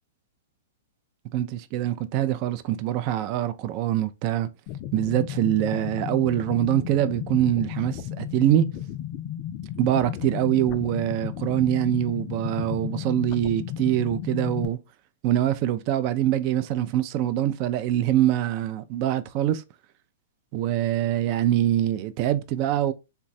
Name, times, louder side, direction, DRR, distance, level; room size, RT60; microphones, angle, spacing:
voice 1, 1.3-4.5 4.9-8.6 9.8-14.8 15.2-19.6 20.5-22.9, right 12 dB, 45° right, 0.3 m, -24 dB
sound 1, 4.7-14.7, left 11 dB, 45° left, 0.3 m, -34 dB
3.1 x 2.2 x 2.6 m
hypercardioid pair, 125°, 0 cm